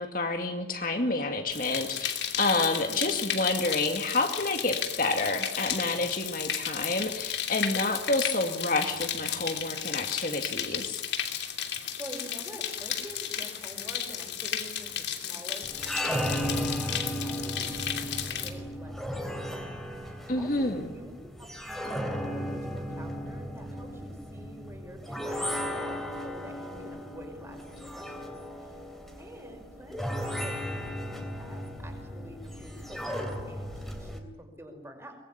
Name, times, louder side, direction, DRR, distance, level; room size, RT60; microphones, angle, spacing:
voice 1, 0.0-11.0 20.3-20.9, left 2 dB, 50° left, 5 dB, 2.3 m, -29 dB
sound 1, 1.5-18.5, left 9 dB, 65° left, 2.9 m, -34 dB
voice 2, 2.7-3.2 12.0-28.3 29.2-30.8 31.1-35.2, equal, 15° right, 3 dB, 5.5 m, -47 dB
sound 2, 15.6-34.2, equal, ahead, 3.1 m, -35 dB
23.5 x 21.0 x 10.0 m, 0.95 s
head